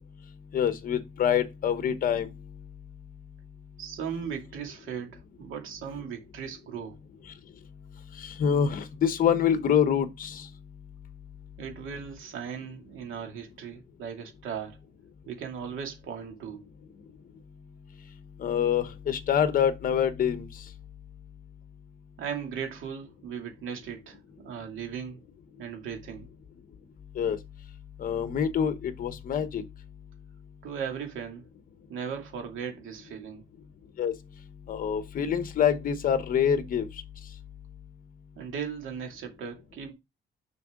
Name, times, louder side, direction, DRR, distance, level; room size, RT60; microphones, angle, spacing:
voice 1, 0.5-2.3 8.1-10.5 18.4-20.6 27.1-27.4 28.0-29.6 34.0-34.1 34.7-36.9, left 8 dB, 45° left, 1.0 m, -26 dB
voice 2, 3.8-7.0 11.6-14.8 15.3-16.6 22.2-25.2 25.6-26.3 30.6-31.4 31.9-33.4 38.4-39.9, right 7 dB, 80° right, 2.4 m, -37 dB
6.7 x 6.0 x 3.7 m
cardioid pair, 180°, 20 cm